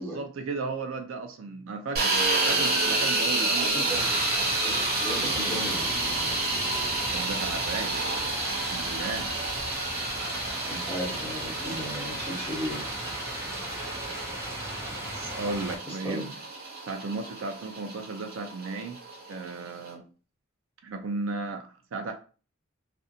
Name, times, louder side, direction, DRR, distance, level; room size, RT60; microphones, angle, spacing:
voice 1, 0.0-2.2 2.5-3.9 7.1-8.0 8.7-9.3 15.1-16.3 16.9-19.0 19.3-20.0 20.8-22.1, right 3 dB, 75° right, 5 dB, 0.4 m, -35 dB
sound 1, 2.0-19.9, right 2 dB, 50° right, 0.7 m, -30 dB
voice 2, 3.3-4.1 4.6-4.7 5.0-5.9 10.6-12.8 15.9-16.3, equal, 10° left, -6 dB, 1.1 m, -35 dB
sound 2, 3.9-15.8, equal, 15° right, 0.5 m, -37 dB
sound 3, 5.0-9.0, left 2 dB, 80° left, 0.4 m, -45 dB
2.5 x 2.2 x 2.7 m, 0.37 s
head